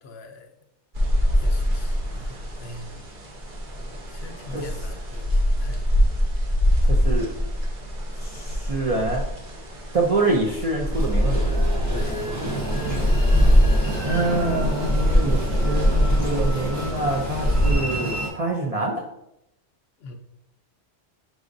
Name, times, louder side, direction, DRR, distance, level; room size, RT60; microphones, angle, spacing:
voice 1, 0.0-0.5 1.4-2.9 4.1-5.9 11.9-12.6 15.8-16.3 20.0-20.1, left 1 dB, 65° left, 5 dB, 0.8 m, -42 dB
sound 1, 0.9-17.7, equal, 45° right, 0.9 m, -23 dB
voice 2, 6.8-7.3 8.2-9.2 9.9-11.7 14.0-19.0, right 2 dB, 60° right, -1 dB, 0.3 m, -26 dB
Train, 10.9-18.3, right 1 dB, 15° right, 0.7 m, -30 dB
4.8 x 3.8 x 2.5 m, 0.83 s
omnidirectional pair, 1.3 m